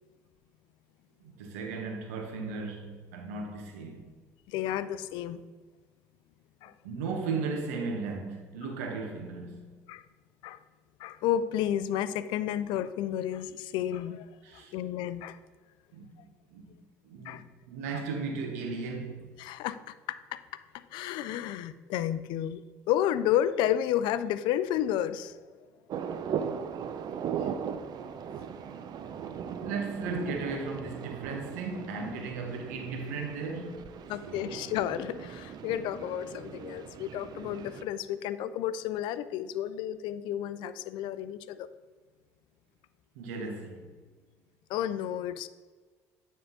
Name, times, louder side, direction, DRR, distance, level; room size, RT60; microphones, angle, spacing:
voice 1, 1.2-4.1 6.8-9.8 14.4-14.7 15.9-16.1 16.5-16.7 17.0-19.5 29.6-33.9 34.2-34.5 43.1-43.9, right 4 dB, 85° right, 1.1 m, -36 dB
voice 2, 4.5-5.4 6.6-6.7 9.9-10.0 10.4-10.6 11.0-14.3 14.7-15.4 17.2-17.4 19.4-20.4 20.7-22.6 22.9-25.4 27.4-27.5 34.1-41.7 44.7-45.5, left 11 dB, 70° left, 0.4 m, -31 dB
sound 1, 25.9-37.8, right 7 dB, 55° right, 0.5 m, -38 dB
9.4 x 3.7 x 4.1 m
hypercardioid pair, 65°, 8 cm